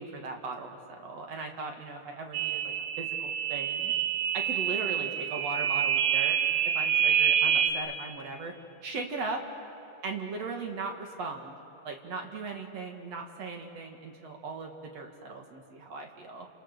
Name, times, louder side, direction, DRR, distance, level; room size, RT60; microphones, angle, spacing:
voice 1, 0.0-3.9 4.3-6.4 6.6-8.5 8.8-9.4 10.0-11.5 11.8-16.5, right 3 dB, 55° right, 2 dB, 3.1 m, -38 dB
sound 1, 2.3-7.7, right 9 dB, 90° right, 2.9 m, -27 dB
30.0 x 28.5 x 6.8 m, 2.8 s
omnidirectional pair, 3.5 m